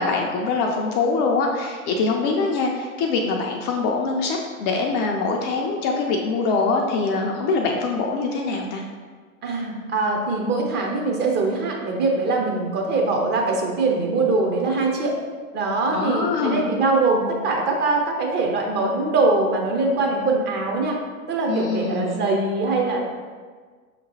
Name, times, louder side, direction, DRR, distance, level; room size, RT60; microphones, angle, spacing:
voice 1, 0.0-8.8 15.9-16.7 21.5-22.2, left 4 dB, 35° left, 1 dB, 0.4 m, -23 dB
voice 2, 9.4-15.1 15.5-21.0 21.3-23.0, right 3 dB, 25° right, 0 dB, 0.7 m, -22 dB
5.8 x 2.9 x 2.8 m, 1.5 s
figure-of-eight pair, 85°, 42 cm